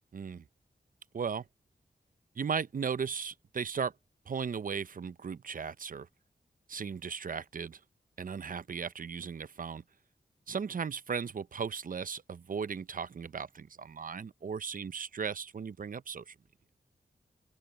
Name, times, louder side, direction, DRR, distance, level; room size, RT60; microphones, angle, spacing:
voice 1, 0.1-0.4 1.1-1.5 2.3-3.9 4.3-6.1 6.7-7.8 8.2-9.8 10.5-16.4, right 6 dB, 55° right, 0.6 m, -36 dB
open air
cardioid pair, 60°, 17 cm